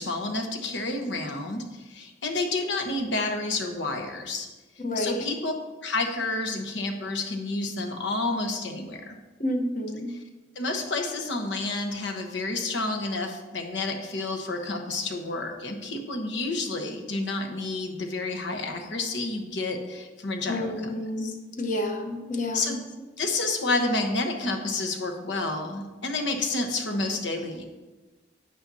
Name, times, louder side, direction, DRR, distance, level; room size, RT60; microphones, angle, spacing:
voice 1, 0.0-4.5 4.9-5.5 5.8-9.2 10.1-10.2 10.5-21.4 22.5-22.8 23.2-27.6, left 2 dB, 75° left, 4 dB, 1.1 m, -30 dB
voice 2, 4.8-5.2 9.4-10.1 20.5-22.8, left 1 dB, 45° left, 3 dB, 1.0 m, -30 dB
9.6 x 8.8 x 2.8 m, 1.2 s
head